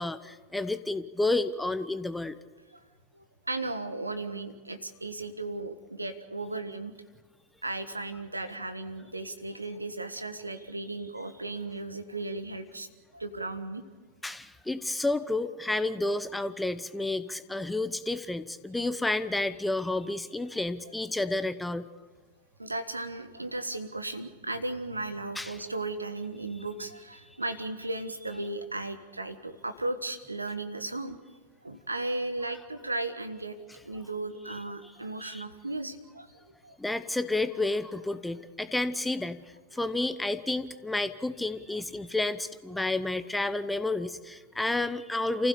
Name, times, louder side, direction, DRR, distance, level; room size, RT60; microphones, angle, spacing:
voice 1, 0.0-2.4 14.2-21.9 25.4-25.6 35.2-35.4 36.8-39.4 39.7-45.5, left 2 dB, 5° left, 13 dB, 0.9 m, -30 dB
voice 2, 3.1-6.9 7.6-12.9 13.1-13.8 22.6-31.2 31.6-33.5 33.8-36.7, right 2 dB, 80° right, 10 dB, 1.4 m, -36 dB
29.0 x 15.5 x 6.8 m, 1.4 s
figure-of-eight pair, 90°, 0 cm